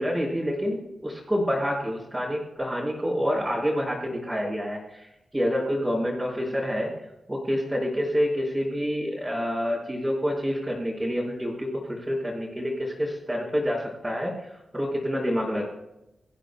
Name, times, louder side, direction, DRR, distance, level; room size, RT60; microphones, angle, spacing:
voice 1, 0.0-6.9 7.3-15.6, equal, 10° right, -7 dB, 5.5 m, -28 dB
27.0 x 15.0 x 2.3 m, 0.89 s
wide cardioid pair, 165°, 0 cm